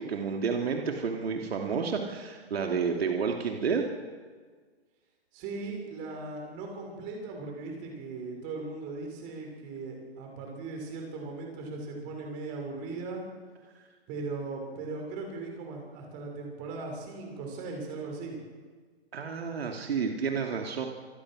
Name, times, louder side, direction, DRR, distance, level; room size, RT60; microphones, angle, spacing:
voice 1, 0.0-3.9 19.1-20.9, right 5 dB, 70° right, 2 dB, 2.9 m, -30 dB
voice 2, 5.3-13.2 14.1-18.4, right 3 dB, 25° right, 1 dB, 6.2 m, -38 dB
26.5 x 20.0 x 6.4 m, 1.5 s
hypercardioid pair, 155°, 32 cm